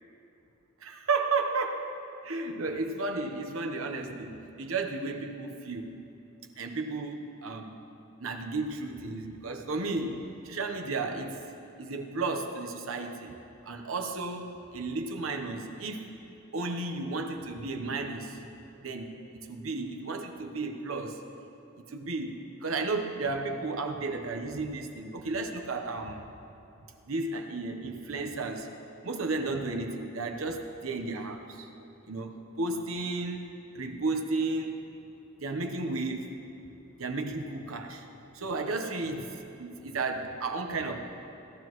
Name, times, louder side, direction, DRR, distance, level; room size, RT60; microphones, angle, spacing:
voice 1, 0.8-1.9 2.2-5.9 6.6-7.8 8.2-11.4 11.8-13.3 13.6-16.1 16.5-18.4 18.8-19.2 19.5-21.2 21.9-26.3 27.1-28.7 29.0-31.7 32.1-33.4 33.7-34.8 35.4-36.4 37.0-38.1 38.3-39.2 39.6-41.0, right 3 dB, 90° right, 4 dB, 1.0 m, -33 dB
17.0 x 13.0 x 3.1 m, 2.8 s
head